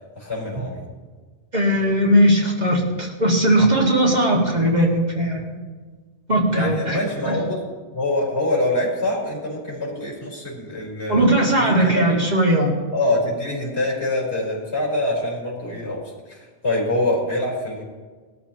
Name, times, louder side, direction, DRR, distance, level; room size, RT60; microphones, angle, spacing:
voice 1, 0.2-0.8 6.5-7.6 7.9-11.3 11.6-12.0 12.9-16.0 16.3-17.8, left 1 dB, 65° left, -5 dB, 4.7 m, -25 dB
voice 2, 1.5-5.5 6.3-7.4 11.1-12.8, right 1 dB, 40° right, -2 dB, 2.2 m, -18 dB
20.0 x 13.5 x 3.0 m, 1.5 s
omnidirectional pair, 1.2 m